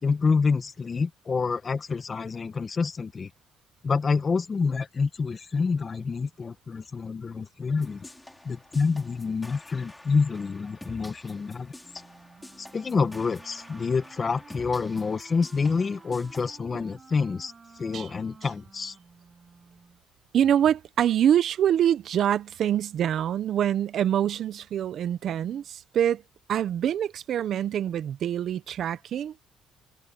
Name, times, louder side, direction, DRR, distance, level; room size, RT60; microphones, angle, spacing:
voice 1, 0.0-3.3 3.8-8.0 8.4-11.7 12.6-17.5 17.8-18.9, left 4 dB, 30° left, 1.6 m, -27 dB
sound 1, 7.8-16.6, left 1 dB, 10° left, 5.0 m, -48 dB
Wind instrument woodwind instrument, 11.8-20.0, right 4 dB, 25° right, 7.9 m, -52 dB
voice 2, 20.3-26.2 26.5-29.3, right 10 dB, 55° right, 0.8 m, -25 dB
cardioid pair, 115°, 0 cm